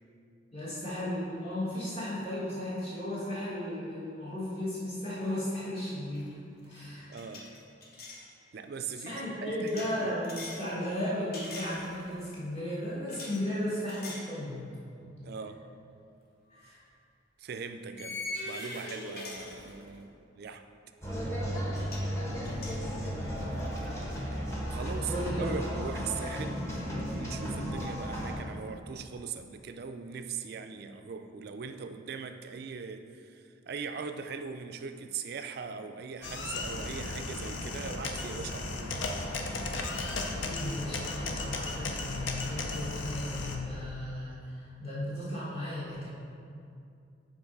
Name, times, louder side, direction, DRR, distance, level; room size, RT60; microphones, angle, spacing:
voice 1, 0.5-6.3 6.6-7.1 9.0-14.7 15.0-15.1 16.5-16.8 24.9-25.5 40.4-46.1, left 1 dB, 35° left, -9 dB, 1.5 m, -35 dB
sound 1, 6.1-6.4 6.6-8.3 9.7-10.7 11.3-12.2 13.1-13.4 13.9-14.3 14.8-15.0 16.5-16.6 18.0-20.0 21.4-21.5 21.7-22.1 22.4-23.9, left 2 dB, 50° left, 0.9 m, -43 dB
voice 2, 7.1-7.5 8.5-10.2 15.2-15.6 17.4-18.2 18.5-20.6 21.1-21.3 24.7-26.6 27.1-39.0, right 5 dB, 55° right, 7 dB, 0.4 m, -40 dB
sound 2, 21.0-28.3, equal, 15° left, 1.0 m, -34 dB
sound 3, 36.2-43.6, left 2 dB, 80° left, 0.7 m, -35 dB
7.1 x 3.8 x 5.3 m, 2.5 s
head